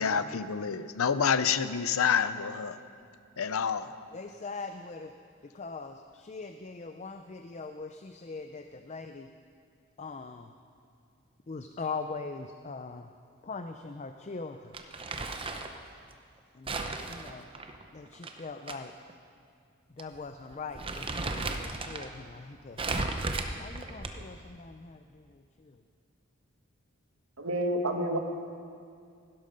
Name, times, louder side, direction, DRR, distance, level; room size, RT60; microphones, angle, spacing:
voice 1, 0.0-2.8 3.4-3.9, left 7 dB, 90° left, 13 dB, 0.6 m, -28 dB
voice 2, 4.1-5.1 5.5-9.3 10.0-10.5 11.5-13.1 13.4-14.7 16.5-17.5 17.9-18.9 20.0-22.8 23.6-25.8, left 4 dB, 35° left, 7 dB, 0.4 m, -41 dB
Crumpling crinkling, 14.7-15.8 16.7-18.8 19.1-19.2 20.0-20.2 20.5-22.1 22.8-24.4, right 3 dB, 25° right, 0.7 m, -35 dB
voice 3, 27.4-28.2, right 1 dB, 80° right, 4 dB, 1.4 m, -29 dB
16.5 x 12.0 x 5.2 m, 2.3 s
head